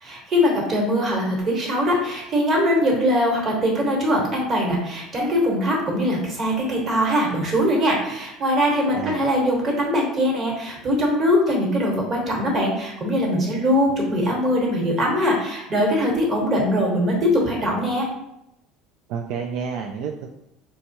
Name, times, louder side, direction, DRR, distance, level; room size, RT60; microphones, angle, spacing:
voice 1, 0.0-18.1, equal, 35° right, -1 dB, 1.2 m, -21 dB
voice 2, 19.1-20.3, right 6 dB, 70° right, 3 dB, 0.3 m, -29 dB
4.3 x 2.3 x 2.8 m, 0.84 s
supercardioid pair, 115°, 0 cm